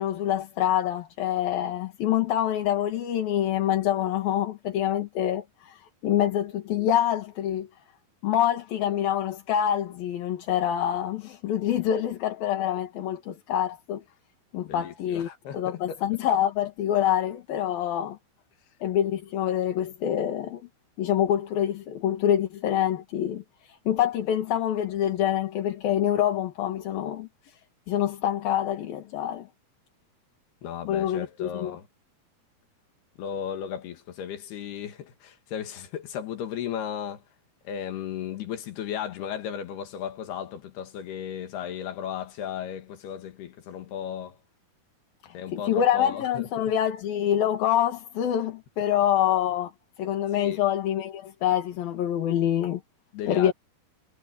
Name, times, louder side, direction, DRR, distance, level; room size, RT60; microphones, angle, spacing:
voice 1, 0.0-7.7 8.2-14.0 14.5-15.3 15.5-18.2 18.8-20.6 21.0-27.6 27.9-29.5 30.9-31.8 45.2-49.7 50.0-52.8 53.3-53.5, left 10 dB, 70° left, 3.7 m, -26 dB
voice 2, 14.6-16.0 30.6-31.9 33.2-37.2 37.7-44.4 45.3-46.5 50.4-50.6 53.1-53.5, left 9 dB, 85° left, 4.0 m, -35 dB
omnidirectional pair, 4.5 m